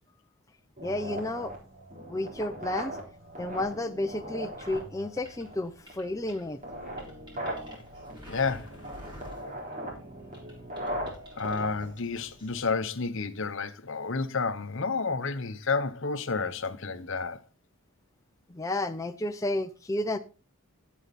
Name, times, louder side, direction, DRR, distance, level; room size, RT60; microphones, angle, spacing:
voice 1, 0.8-1.5 2.1-3.0 3.4-6.6 18.5-20.2, left 1 dB, 15° left, 0.5 m, -31 dB
sound 1, 0.8-12.8, equal, 35° right, 3.9 m, -40 dB
sound 2, 3.9-10.0 10.3-12.7, equal, 20° right, 4.5 m, -51 dB
voice 2, 8.3-8.8 11.4-17.4, left 4 dB, 55° left, 0.9 m, -30 dB
11.5 x 8.6 x 4.2 m
head